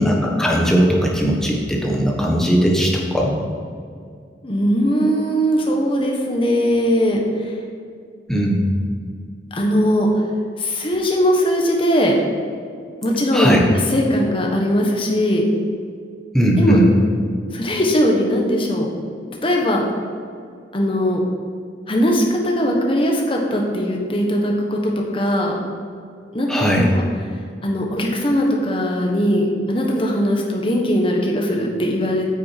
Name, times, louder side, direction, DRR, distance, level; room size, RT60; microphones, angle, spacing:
voice 1, 0.0-3.4 8.3-8.7 13.3-13.6 16.3-16.8 26.5-26.9, equal, 5° left, -2 dB, 1.2 m, -18 dB
voice 2, 4.4-7.6 9.5-10.1 10.6-12.2 13.0-15.4 16.6-16.8 17.5-18.9 19.4-19.8 20.7-21.2 21.9-25.6 26.3-26.5 26.8-27.0 27.6-32.3, equal, 30° left, 0 dB, 1.2 m, -19 dB
9.0 x 6.1 x 4.5 m, 2.2 s
head